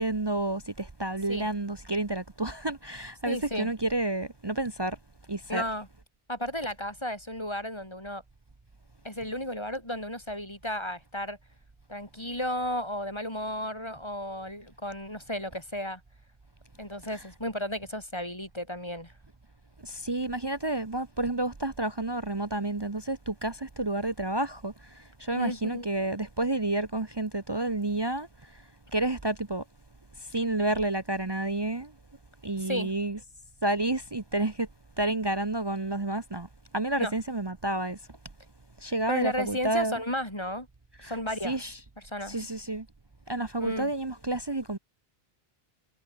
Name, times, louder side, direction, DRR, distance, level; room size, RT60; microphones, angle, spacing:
voice 1, 0.0-5.0 5.3-5.6 19.8-28.3 28.9-29.6 30.2-31.9 32.4-33.2 33.6-34.7 35.0-36.5 36.7-38.0 38.8-40.0 41.0-41.1 41.4-41.8 42.3-42.9 43.3-44.8, right 2 dB, 25° right, 1.0 m, -30 dB
voice 2, 3.2-3.7 5.5-5.9 6.3-8.2 9.0-11.4 11.9-16.0 16.8-19.1 25.4-25.9 32.6-32.9 37.0-37.1 39.1-40.7 41.0-41.7 42.0-42.4 43.6-43.9, left 1 dB, 25° left, 5.4 m, -33 dB
omnidirectional pair, 1.0 m